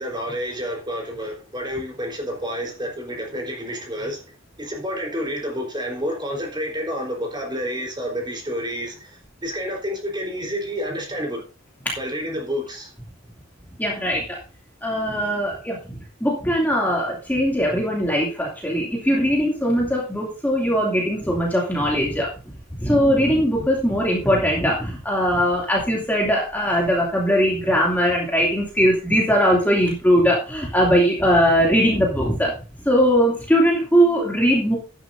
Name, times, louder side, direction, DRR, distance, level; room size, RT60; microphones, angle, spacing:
voice 1, 0.0-4.2 4.6-9.1 9.4-11.4 12.0-12.9, equal, 20° right, 0 dB, 3.9 m, -29 dB
voice 2, 13.8-14.4 14.8-15.8 16.2-22.3 22.8-32.5 32.9-34.8, equal, 10° left, -3 dB, 2.6 m, -20 dB
12.0 x 11.0 x 2.6 m, 0.34 s
head